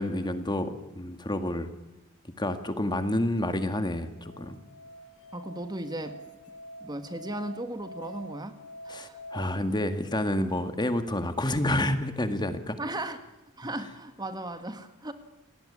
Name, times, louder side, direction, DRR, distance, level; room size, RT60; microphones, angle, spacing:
voice 1, 0.0-1.7 2.4-4.6 8.9-12.8, left 1 dB, 20° left, 9 dB, 1.9 m, -29 dB
Musical instrument, 4.1-9.4, equal, 80° left, 3.4 m, -45 dB
voice 2, 5.3-6.2 6.8-8.6 8.9-9.2 12.8-13.2 13.6-15.1, right 1 dB, 20° right, 9 dB, 1.8 m, -36 dB
29.0 x 19.5 x 9.9 m, 0.96 s
head